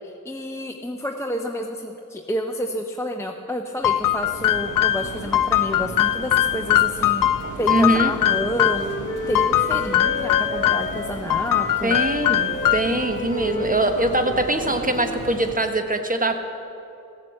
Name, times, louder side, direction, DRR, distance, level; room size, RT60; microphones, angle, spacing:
voice 1, 0.0-7.2 7.6-8.9 9.3-12.0, equal, 10° left, 2 dB, 0.7 m, -30 dB
sound 1, 3.8-8.9 9.3-11.0 11.3-13.0, left 12 dB, 75° left, 0.5 m, -21 dB
sound 2, 3.8-15.6, right 3 dB, 65° right, 1.3 m, -36 dB
Wind instrument woodwind instrument, 7.6-11.2 11.5-15.3, left 2 dB, 35° left, 1.4 m, -32 dB
voice 2, 7.7-8.1 11.8-16.4, right 1 dB, 25° right, 6 dB, 1.3 m, -22 dB
15.5 x 7.5 x 7.6 m, 2.7 s
cardioid pair, 70°, 33 cm